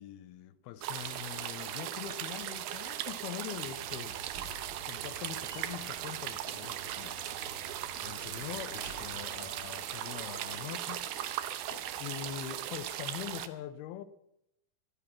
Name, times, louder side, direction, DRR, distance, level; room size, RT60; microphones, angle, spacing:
voice 1, 0.0-4.2 4.9-7.2 8.0-11.0 11.9-14.0, left 11 dB, 90° left, 2.7 m, -43 dB
sound 1, 0.8-13.5, right 12 dB, 75° right, 2.5 m, -38 dB
Slam, 3.6-9.8, right 2 dB, 50° right, 1.2 m, -51 dB
sound 2, 6.3-12.4, left 7 dB, 60° left, 2.4 m, -55 dB
17.0 x 12.5 x 5.9 m
omnidirectional pair, 4.4 m